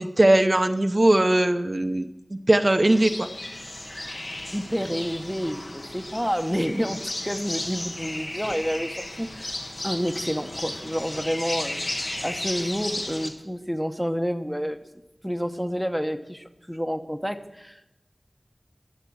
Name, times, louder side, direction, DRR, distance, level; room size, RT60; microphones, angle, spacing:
voice 1, 0.0-3.3, right 1 dB, 50° right, 7 dB, 0.7 m, -20 dB
sound 1, 2.9-13.3, left 1 dB, 75° left, 1.5 m, -34 dB
voice 2, 4.5-9.6 9.8-11.8 12.2-14.8 15.2-17.9, equal, ahead, 6 dB, 0.9 m, -29 dB
12.5 x 7.3 x 7.2 m, 0.90 s
wide cardioid pair, 45°, 0 cm